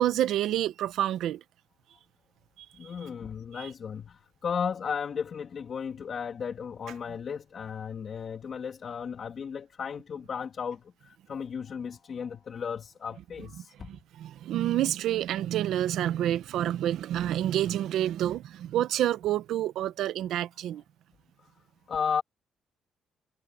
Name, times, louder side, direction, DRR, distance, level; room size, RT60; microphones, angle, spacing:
voice 1, 0.0-1.4 2.6-2.9 3.5-3.7 13.6-20.8, right 12 dB, 80° right, 0.9 m, -28 dB
voice 2, 2.8-13.9 21.4-21.5 21.9-22.2, left 6 dB, 50° left, 2.3 m, -35 dB
cardioid pair, 90°, 0 cm